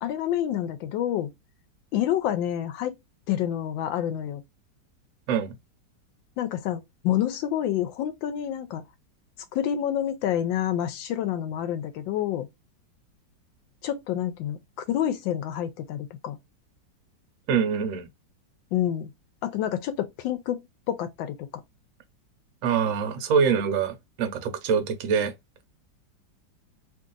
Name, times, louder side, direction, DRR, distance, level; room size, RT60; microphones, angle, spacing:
voice 1, 0.0-1.3 1.9-3.0 3.3-4.4 6.4-8.8 9.5-12.5 13.8-14.6 14.9-16.4 18.7-19.1 19.4-21.4, left 11 dB, 90° left, 1.3 m, -28 dB
voice 2, 17.5-18.1 22.6-25.3, right 6 dB, 60° right, 0.9 m, -24 dB
3.0 x 2.6 x 3.7 m
omnidirectional pair, 2.0 m